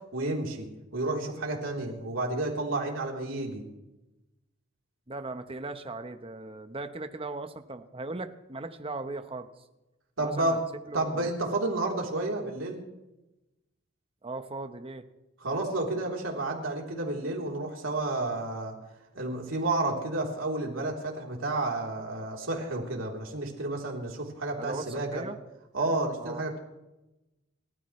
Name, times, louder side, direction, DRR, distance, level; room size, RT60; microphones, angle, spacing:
voice 1, 0.1-0.7 0.9-3.6 10.2-10.6 10.9-12.8 15.4-18.7 19.1-25.2 25.7-26.6, right 2 dB, 80° right, -1 dB, 3.7 m, -31 dB
voice 2, 5.1-9.5 10.2-10.6 10.9-11.3 14.2-15.0 24.6-25.4 26.2-26.4, right 3 dB, 30° right, 8 dB, 1.1 m, -38 dB
29.5 x 14.0 x 3.3 m, 0.99 s
head